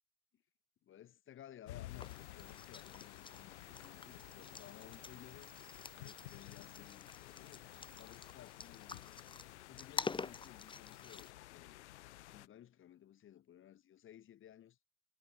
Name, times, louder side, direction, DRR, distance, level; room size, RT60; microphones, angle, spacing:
voice 1, 0.8-5.5 6.0-9.2 9.7-11.9 12.1-14.8, left 11 dB, 30° left, 7.5 m, -58 dB
sound 1, 1.7-12.5, left 16 dB, 55° left, 4.0 m, -53 dB
sound 2, 1.9-11.3, left 4 dB, 10° left, 3.9 m, -48 dB
figure-of-eight pair, 90°, 40 cm